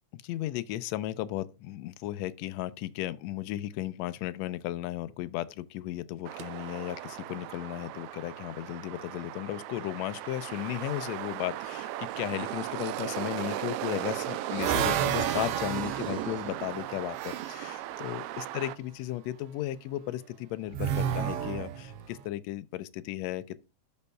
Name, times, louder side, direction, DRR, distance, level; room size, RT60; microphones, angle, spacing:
voice 1, 0.1-23.7, left 14 dB, 80° left, 1.7 m, -35 dB
sound 1, 6.3-18.8, right 14 dB, 85° right, 1.4 m, -37 dB
sound 2, 13.8-17.7 20.7-22.2, right 9 dB, 70° right, 1.6 m, -31 dB
12.0 x 5.3 x 2.2 m
omnidirectional pair, 3.3 m